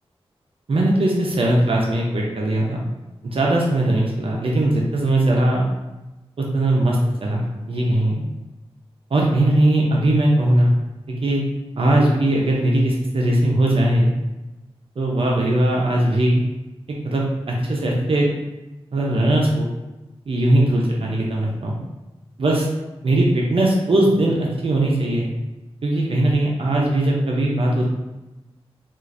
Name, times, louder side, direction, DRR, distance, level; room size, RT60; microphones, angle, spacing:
voice 1, 0.7-2.8 3.2-5.6 6.4-8.2 9.1-10.7 11.1-11.4 11.8-14.1 15.0-16.4 17.0-18.3 18.9-19.7 20.3-21.8 22.4-22.7 23.0-25.3 25.8-27.9, right 1 dB, 60° right, -2 dB, 0.6 m, -19 dB
4.4 x 2.4 x 2.5 m, 1.1 s
wide cardioid pair, 75°, 11 cm